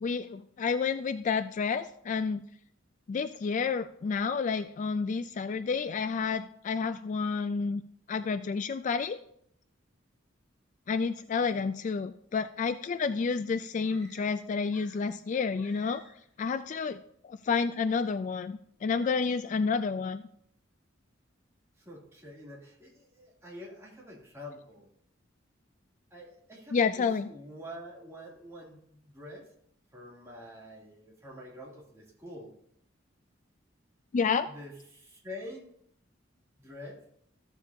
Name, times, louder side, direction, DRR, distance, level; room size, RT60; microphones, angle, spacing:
voice 1, 0.0-2.4 3.1-7.8 8.1-9.2 10.9-16.0 16.4-20.2 26.7-27.3 34.1-34.5, left 5 dB, 40° left, 12 dB, 0.3 m, -30 dB
sound 1, 13.8-15.2 15.6-16.4, left 2 dB, 5° left, 3.6 m, -56 dB
voice 2, 21.8-24.9 26.1-29.5 29.9-32.6 34.5-35.7 36.6-37.0, left 1 dB, 15° right, -5 dB, 2.6 m, -46 dB
14.5 x 7.2 x 2.7 m, 0.70 s
head